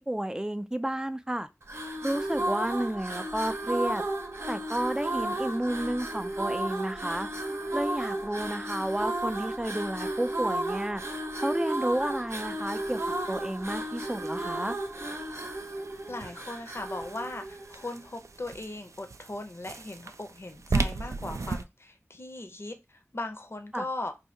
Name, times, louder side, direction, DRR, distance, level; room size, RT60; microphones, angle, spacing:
voice 1, 0.1-1.5 2.0-4.0 4.5-7.3 7.7-11.0 11.4-13.0 13.3-14.7 23.7-23.8, right 1 dB, 15° right, 0.4 m, -31 dB
sound 1, 1.6-18.1, right 1 dB, 60° right, 0.7 m, -33 dB
sound 2, 12.3-21.6, right 3 dB, 85° right, 0.3 m, -37 dB
voice 2, 16.1-24.1, left 2 dB, 55° left, 0.6 m, -38 dB
2.7 x 2.7 x 4.3 m
wide cardioid pair, 50°, 5 cm